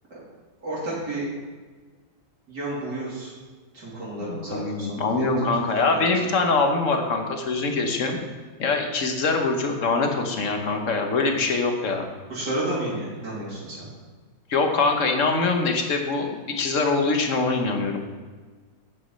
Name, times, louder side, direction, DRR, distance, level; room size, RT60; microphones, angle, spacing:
voice 1, 0.6-1.2 2.5-3.3 3.7-4.9 5.1-5.5 5.8-6.0 12.3-13.9, right 1 dB, 65° right, -8 dB, 3.8 m, -31 dB
voice 2, 4.2-8.2 8.6-12.1 14.5-18.0, left 3 dB, 45° left, 3 dB, 1.4 m, -23 dB
9.6 x 7.4 x 5.5 m, 1.4 s
omnidirectional pair, 1.9 m